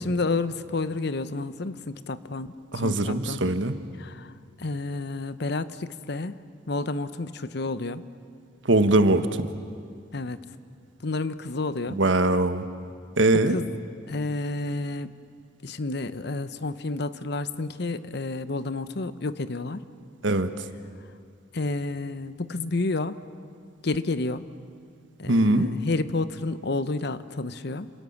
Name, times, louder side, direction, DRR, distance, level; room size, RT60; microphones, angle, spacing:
voice 1, 0.0-3.4 4.0-4.3 4.6-6.4 6.7-8.0 10.1-10.4 11.0-12.0 13.5-13.6 14.1-15.1 15.6-19.8 21.5-23.2 23.8-24.4 25.2-27.9, left 3 dB, 60° left, 13 dB, 0.9 m, -30 dB
voice 2, 2.7-3.8 8.6-9.5 11.9-12.7 13.2-13.6 20.2-20.6 25.2-25.7, right 2 dB, 80° right, 10 dB, 1.4 m, -22 dB
28.5 x 27.0 x 7.2 m, 2.3 s
head